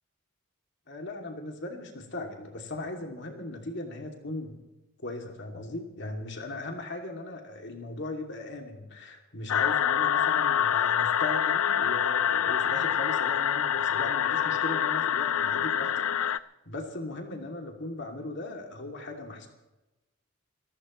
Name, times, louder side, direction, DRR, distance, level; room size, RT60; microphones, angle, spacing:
voice 1, 0.9-4.6 5.0-19.5, left 2 dB, 55° left, 2 dB, 2.7 m, -38 dB
sound 1, 9.5-16.4, left 9 dB, 85° left, 0.5 m, -26 dB
28.5 x 15.0 x 3.2 m, 1.0 s
head